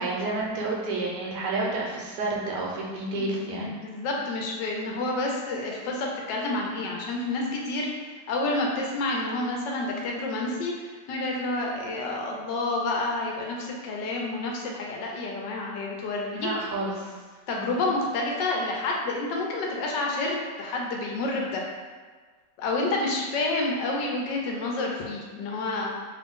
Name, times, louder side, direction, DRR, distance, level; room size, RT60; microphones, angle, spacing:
voice 1, 0.0-3.7 16.3-17.1 17.5-17.8, right 2 dB, 75° right, -3 dB, 1.2 m, -30 dB
voice 2, 3.1-7.9 8.3-10.7 11.1-16.5 17.5-21.7 22.6-25.9, left 2 dB, 75° left, -1 dB, 1.2 m, -29 dB
3.1 x 2.5 x 3.5 m, 1.5 s
omnidirectional pair, 1.9 m